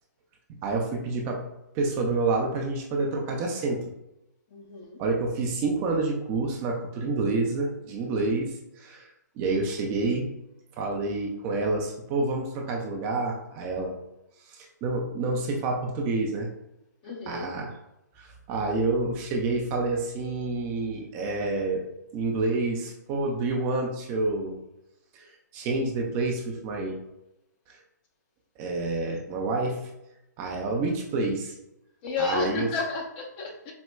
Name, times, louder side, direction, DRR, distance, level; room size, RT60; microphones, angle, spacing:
voice 1, 0.6-1.4 1.7-3.8 5.0-9.1 9.4-10.3 10.8-13.9 14.5-16.5 17.3-17.7 18.2-21.8 22.1-24.6 25.1-25.3 25.5-27.0 27.7-27.8 28.6-29.8 30.4-31.5 32.2-32.7, right 3 dB, 25° right, 1 dB, 0.4 m, -28 dB
voice 2, 4.5-5.0 17.0-17.5 32.0-33.7, left 4 dB, 30° left, 1 dB, 0.6 m, -31 dB
4.3 x 2.1 x 2.2 m, 0.87 s
hypercardioid pair, 145°, 10 cm